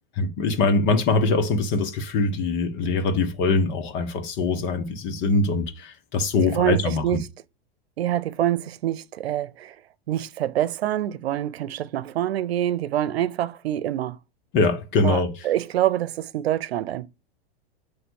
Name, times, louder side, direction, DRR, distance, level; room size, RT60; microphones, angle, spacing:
voice 1, 0.2-7.2 14.5-15.5, left 3 dB, 35° left, 1.4 m, -23 dB
voice 2, 6.5-7.3 8.0-9.7 10.1-14.2 15.0-17.1, right 12 dB, 80° right, 0.8 m, -26 dB
9.2 x 3.3 x 6.4 m
hypercardioid pair, 135°, 31 cm